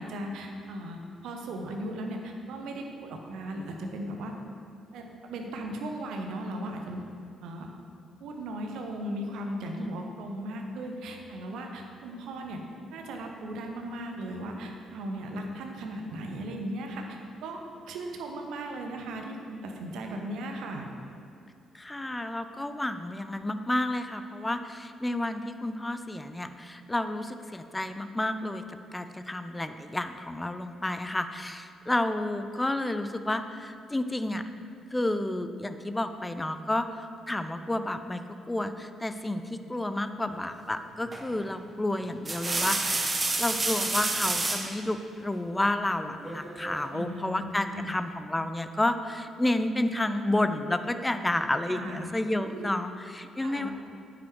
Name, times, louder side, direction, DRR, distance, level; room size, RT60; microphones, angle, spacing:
voice 1, 0.0-4.3 4.9-7.1 7.4-7.7 8.2-12.6 12.9-20.9 46.9-48.0 51.6-52.1 52.4-52.7 53.4-53.7, right 1 dB, 60° right, 2 dB, 1.1 m, -37 dB
voice 2, 21.7-28.6 28.9-34.4 34.9-53.7, left 1 dB, 15° left, 9 dB, 0.7 m, -31 dB
sound 1, 41.1-41.4 42.0-44.7 46.2-46.9, right 2 dB, 25° right, 1.3 m, -29 dB
9.3 x 9.2 x 4.7 m, 2.4 s
figure-of-eight pair, 40°, 0 cm